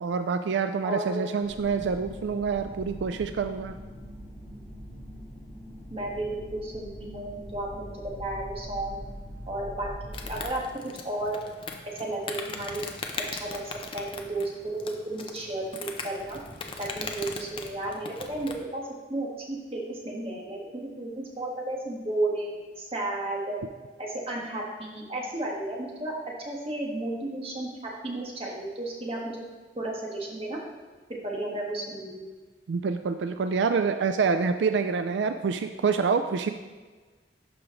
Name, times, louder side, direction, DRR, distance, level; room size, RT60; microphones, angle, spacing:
voice 1, 0.0-3.7 32.7-36.5, right 5 dB, 85° right, 8 dB, 0.4 m, -27 dB
voice 2, 0.8-1.2 5.9-9.0 9.5-10.6 11.0-11.4 11.8-12.8 13.4-13.6 13.9-14.5 14.8-16.4 16.8-23.6 24.0-26.1 26.4-27.7 28.0-29.4 29.7-30.6 31.1-32.3, right 1 dB, 30° right, -2 dB, 1.5 m, -33 dB
sound 1, 1.4-10.5, equal, 10° left, 2.5 m, -42 dB
Insect, 10.1-18.6, left 4 dB, 30° left, 0.6 m, -39 dB
12.0 x 4.9 x 3.1 m, 1.4 s
head